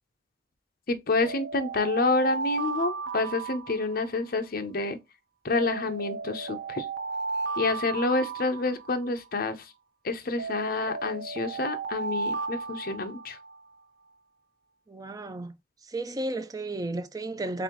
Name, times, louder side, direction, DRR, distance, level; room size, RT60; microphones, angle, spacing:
voice 1, 0.9-5.0 5.4-6.9 7.6-9.7 10.0-13.4, left 3 dB, 55° left, 0.7 m, -28 dB
sound 1, 1.2-4.4 5.5-9.3 10.4-13.6, right 4 dB, 70° right, 0.5 m, -34 dB
voice 2, 14.9-15.5 15.9-17.6, right 2 dB, 20° right, 0.4 m, -33 dB
4.0 x 3.7 x 3.0 m
head